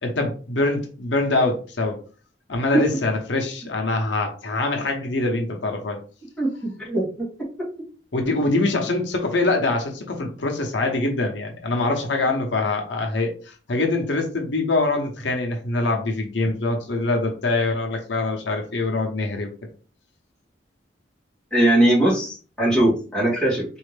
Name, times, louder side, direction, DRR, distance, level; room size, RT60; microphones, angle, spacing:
voice 1, 0.0-2.0 2.5-6.0 8.1-19.5, left 2 dB, 80° left, 3 dB, 0.9 m, -24 dB
voice 2, 6.8-7.3 21.5-23.6, right 1 dB, 5° left, -7 dB, 2.1 m, -20 dB
4.2 x 2.7 x 3.3 m, 0.37 s
head